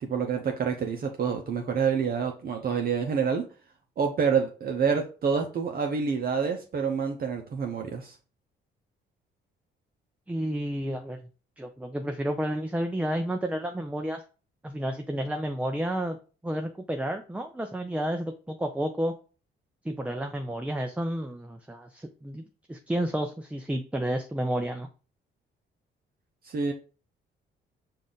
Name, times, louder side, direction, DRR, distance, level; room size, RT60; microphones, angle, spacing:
voice 1, 0.0-3.4 4.0-8.2 26.4-26.7, right 6 dB, 50° right, 3 dB, 0.7 m, -27 dB
voice 2, 10.3-11.2 11.6-14.2 14.6-16.2 16.4-19.1 19.8-24.9, right 1 dB, 5° right, 5 dB, 0.5 m, -31 dB
5.3 x 2.5 x 3.9 m, 0.36 s
cardioid pair, 90°, 20 cm